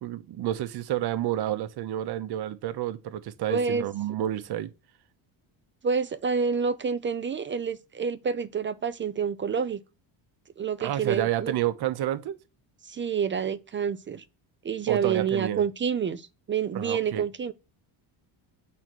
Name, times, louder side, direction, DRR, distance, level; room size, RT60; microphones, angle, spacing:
voice 1, 0.0-4.7 10.8-12.4 14.9-15.6 16.7-17.2, right 12 dB, 50° right, 1.0 m, -29 dB
voice 2, 3.5-3.8 5.8-9.8 10.6-11.5 12.8-14.2 14.6-17.5, right 6 dB, 25° right, 0.4 m, -28 dB
8.8 x 4.0 x 6.2 m
cardioid pair, 130°, 49 cm